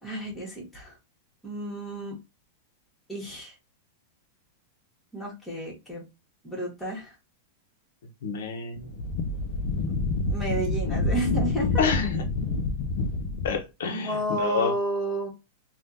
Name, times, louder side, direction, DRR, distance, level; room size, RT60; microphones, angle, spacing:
voice 1, 0.0-0.9 1.4-2.1 3.1-3.5 5.1-6.0 6.4-7.1 10.2-11.7 13.9-15.3, right 1 dB, 5° left, 1.5 m, -31 dB
voice 2, 8.2-8.9 11.8-12.2 13.4-14.7, left 6 dB, 75° left, 0.8 m, -28 dB
Wind, 8.8-13.6, left 3 dB, 45° left, 0.5 m, -28 dB
3.5 x 2.4 x 2.7 m
supercardioid pair, 150°, 0 cm